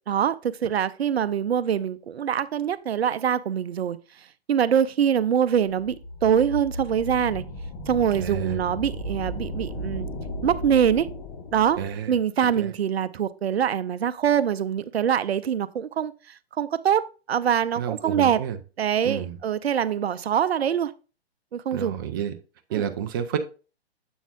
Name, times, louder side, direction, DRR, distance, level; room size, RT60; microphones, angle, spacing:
voice 1, 0.1-6.0 6.2-7.4 7.9-10.1 10.4-11.1 11.5-11.8 12.1-18.4 18.8-20.9 21.5-22.0 22.7-22.9, right 8 dB, 70° right, 0.6 m, -24 dB
sound 1, 5.6-12.1, equal, 30° left, 1.4 m, -35 dB
voice 2, 8.1-8.6 11.8-12.1 12.6-12.7 17.8-18.6 19.0-19.3 21.7-22.3 22.7-23.4, right 9 dB, 20° right, 0.4 m, -30 dB
7.3 x 7.1 x 2.4 m
figure-of-eight pair, 125°, 32 cm